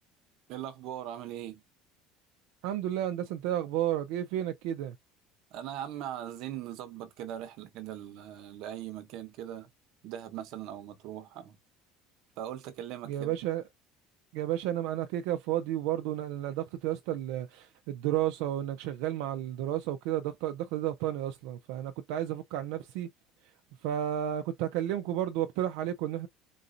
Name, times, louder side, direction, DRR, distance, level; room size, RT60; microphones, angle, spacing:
voice 1, 0.5-1.6 5.5-9.7 10.0-11.6 12.4-13.4, right 11 dB, 50° right, 1.0 m, -40 dB
voice 2, 2.6-4.9 13.0-13.6 14.3-23.1 23.8-26.3, right 12 dB, 70° right, 0.5 m, -32 dB
3.9 x 2.5 x 3.9 m
cardioid pair, 175°, 0 cm